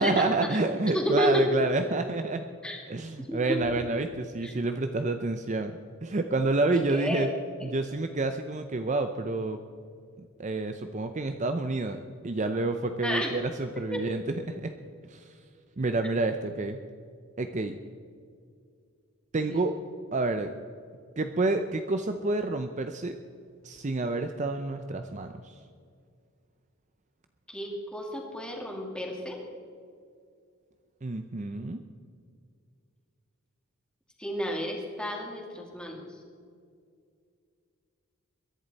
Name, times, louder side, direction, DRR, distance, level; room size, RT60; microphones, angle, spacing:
voice 1, 0.0-2.5 2.9-7.3 7.6-9.6 10.2-12.0 12.2-14.7 15.1-15.3 15.8-16.8 17.4-17.7 19.3-19.7 20.1-20.5 21.2-23.2 23.6-25.5 31.0-31.8, right 2 dB, 35° right, 7 dB, 0.6 m, -29 dB
voice 2, 0.9-1.4 2.6-2.8 3.3-3.4 4.4-4.5 6.7-7.3 7.6-7.7 13.0-13.3 13.9-14.0 19.5-19.7 27.5-29.4 34.2-36.0, left 1 dB, 5° left, 0 dB, 2.2 m, -31 dB
22.5 x 11.0 x 4.1 m, 2.2 s
head